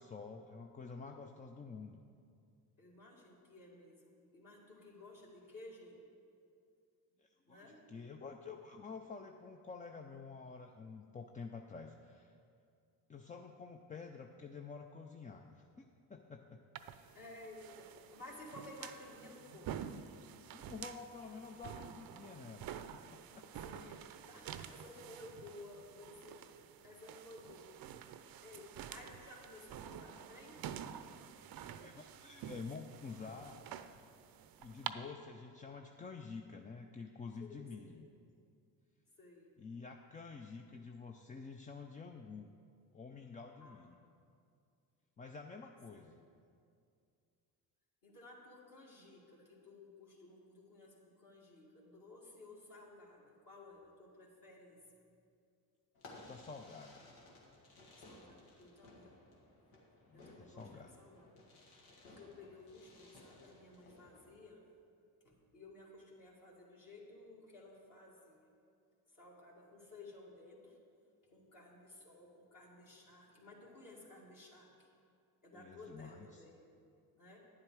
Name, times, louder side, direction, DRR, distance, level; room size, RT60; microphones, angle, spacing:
voice 1, 0.0-2.0 7.2-12.3 13.1-15.8 16.1-16.6 20.5-22.7 23.1-23.5 31.8-33.6 34.6-38.1 39.6-42.5 42.9-44.0 45.2-46.2 56.1-57.0 60.1-60.9 75.5-76.4, left 4 dB, 15° left, 4 dB, 0.4 m, -49 dB
voice 2, 2.8-6.0 7.5-7.9 17.1-19.9 23.5-27.8 28.4-30.7 37.4-38.0 39.2-39.5 43.6-43.9 45.9-46.2 48.0-55.1 58.0-59.1 60.1-61.4 62.0-64.6 65.2-68.5 69.1-70.8 71.2-74.9 75.4-76.6 77.2-77.4, left 2 dB, 40° left, -5 dB, 2.1 m, -55 dB
sound 1, 16.8-34.9, right 9 dB, 50° right, 0.6 m, -49 dB
Fireworks, 55.9-64.3, left 2 dB, 80° left, 1.8 m, -59 dB
9.8 x 7.5 x 4.7 m, 2.4 s
hypercardioid pair, 55°, 48 cm